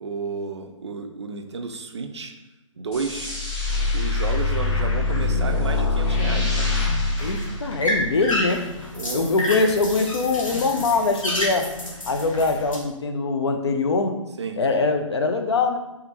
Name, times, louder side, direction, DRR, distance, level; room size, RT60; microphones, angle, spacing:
voice 1, 0.0-2.3 2.8-3.3 3.9-6.7 8.9-9.5 14.4-14.6, right 4 dB, 55° right, 6 dB, 0.4 m, -32 dB
sound 1, 2.9-8.3, left 3 dB, 15° left, 0.7 m, -24 dB
sound 2, 6.6-12.8, left 1 dB, 75° left, 1.1 m, -30 dB
voice 2, 7.2-8.7 9.1-11.7 12.1-14.2 14.6-15.8, left 3 dB, 55° left, 5 dB, 0.5 m, -23 dB
3.6 x 3.4 x 2.9 m, 1.0 s
figure-of-eight pair, 135°, 17 cm